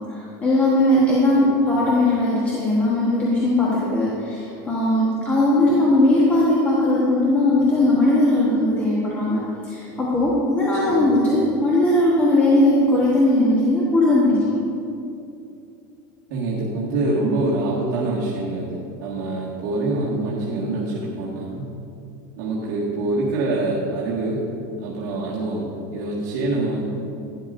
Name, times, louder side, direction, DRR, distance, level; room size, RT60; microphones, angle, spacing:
voice 1, 0.4-14.7, left 1 dB, 15° left, -7 dB, 1.2 m, -19 dB
voice 2, 16.3-21.7 22.4-24.4 24.8-25.7 25.9-26.8, right 2 dB, 65° right, -7 dB, 1.7 m, -25 dB
12.0 x 11.0 x 2.6 m, 2.6 s
supercardioid pair, 170°, 11 cm